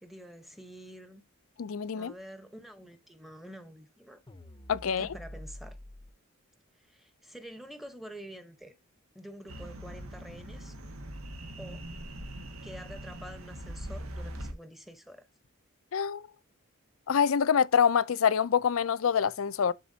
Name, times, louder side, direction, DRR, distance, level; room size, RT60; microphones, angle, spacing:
voice 1, 0.0-1.2 1.9-4.2 4.9-5.8 6.7-8.7 9.1-10.8 11.6-11.9 12.6-15.3, equal, ahead, 0.9 m, -47 dB
voice 2, 1.6-2.1 4.7-5.1 15.9-16.2 17.1-19.7, left 7 dB, 70° left, 0.5 m, -26 dB
sound 1, 4.3-6.1, left 1 dB, 20° left, 0.7 m, -46 dB
sound 2, 9.5-14.5, right 1 dB, 80° right, 1.5 m, -41 dB
11.0 x 4.1 x 2.7 m
head